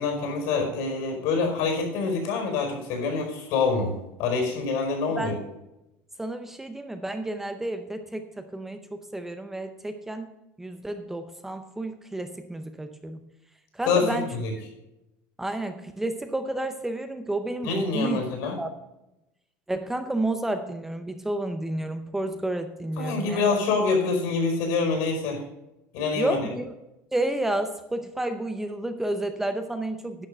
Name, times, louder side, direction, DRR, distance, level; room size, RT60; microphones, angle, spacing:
voice 1, 0.0-3.9 4.2-5.4 13.9-14.5 17.6-18.6 23.0-25.4 25.9-26.5, left 4 dB, 70° left, 3 dB, 4.6 m, -26 dB
voice 2, 6.2-8.8 9.1-10.3 10.6-13.2 13.7-14.2 15.4-18.2 18.6-18.7 19.7-23.5 26.2-26.7 27.1-30.3, right 1 dB, 5° right, 8 dB, 0.6 m, -30 dB
11.0 x 6.6 x 6.5 m, 0.92 s
cardioid pair, 155°, 6 cm